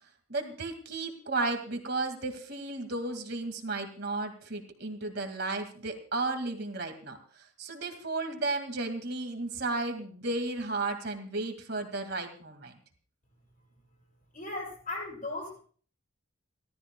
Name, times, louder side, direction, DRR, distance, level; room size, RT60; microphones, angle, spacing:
voice 1, 0.3-12.7, right 3 dB, 50° right, 5 dB, 2.0 m, -34 dB
voice 2, 14.3-15.6, left 2 dB, 40° left, -2 dB, 7.8 m, -37 dB
29.5 x 13.5 x 2.2 m, 0.43 s
head